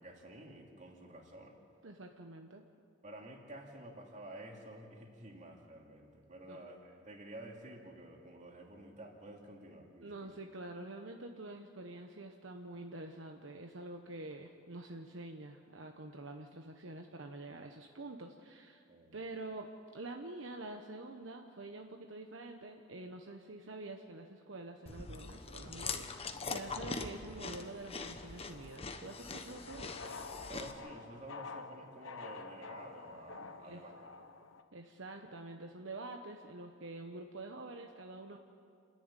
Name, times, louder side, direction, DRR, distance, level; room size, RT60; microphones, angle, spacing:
voice 1, 0.0-1.6 3.0-10.3 18.9-19.1 30.5-33.9, right 1 dB, 40° right, 1 dB, 2.7 m, -51 dB
voice 2, 1.8-2.6 6.5-6.7 10.0-18.8 19.1-30.0 33.7-34.0 34.7-38.4, right 2 dB, 70° right, 4 dB, 1.1 m, -47 dB
Chewing mastication, 24.9-30.7, left 4 dB, 30° left, 1.1 m, -43 dB
sound 1, 28.1-34.6, left 4 dB, 85° left, 1.1 m, -49 dB
29.0 x 11.0 x 9.0 m, 2.3 s
head